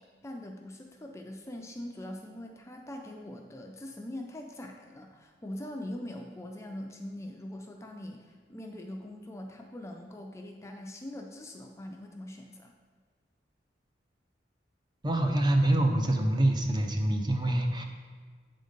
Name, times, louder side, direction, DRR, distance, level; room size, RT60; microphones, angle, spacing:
voice 1, 0.2-12.7, left 1 dB, 15° left, 2 dB, 0.4 m, -42 dB
voice 2, 15.0-17.8, right 1 dB, 25° right, 4 dB, 0.6 m, -25 dB
8.3 x 3.9 x 5.1 m, 1.5 s
head